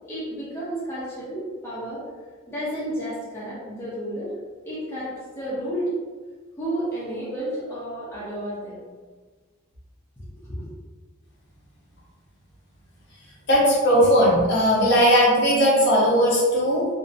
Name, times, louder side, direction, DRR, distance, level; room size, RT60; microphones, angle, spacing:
voice 1, 0.1-2.0 2.5-4.3 4.6-5.9 6.6-8.8 10.4-10.7, right 1 dB, 10° left, -10 dB, 0.5 m, -31 dB
voice 2, 13.5-16.9, equal, 50° left, -6 dB, 0.7 m, -18 dB
2.5 x 2.0 x 2.5 m, 1.4 s
head